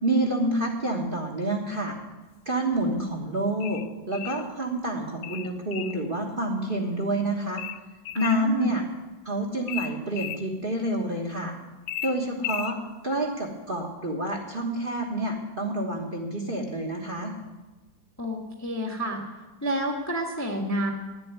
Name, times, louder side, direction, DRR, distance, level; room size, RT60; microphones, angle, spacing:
voice 1, 0.0-1.9 2.4-7.6 8.1-8.8 9.2-11.5 12.0-12.8 13.0-17.3, right 1 dB, 30° right, 1 dB, 1.4 m, -28 dB
sound 1, 3.6-4.5 5.2-6.0 7.6-8.4 9.7-10.4 11.9-12.8, left 11 dB, 80° left, 1.2 m, -35 dB
voice 2, 8.1-8.7 18.2-19.2 19.6-20.9, equal, 10° left, 2 dB, 1.3 m, -29 dB
10.5 x 7.9 x 9.4 m, 1.2 s
omnidirectional pair, 1.9 m